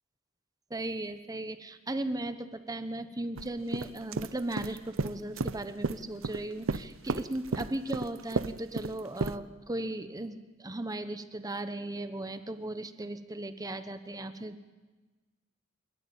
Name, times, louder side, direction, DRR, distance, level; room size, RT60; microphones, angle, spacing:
voice 1, 0.7-14.7, right 1 dB, 20° right, 9 dB, 1.0 m, -37 dB
sound 1, 3.4-3.5 3.7-6.4 6.7-9.4, right 3 dB, 75° right, 0.7 m, -32 dB
28.0 x 13.5 x 8.8 m, 1.3 s
head